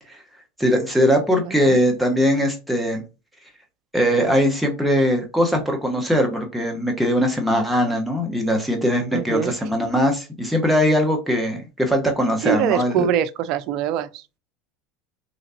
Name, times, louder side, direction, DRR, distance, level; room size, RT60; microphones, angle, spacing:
voice 1, 0.6-3.0 3.9-13.1, equal, 5° right, 1.0 m, -20 dB
voice 2, 1.4-1.8 9.1-9.5 12.4-14.4, right 9 dB, 60° right, 0.4 m, -24 dB
3.9 x 3.2 x 2.7 m
hypercardioid pair, 95°, 0 cm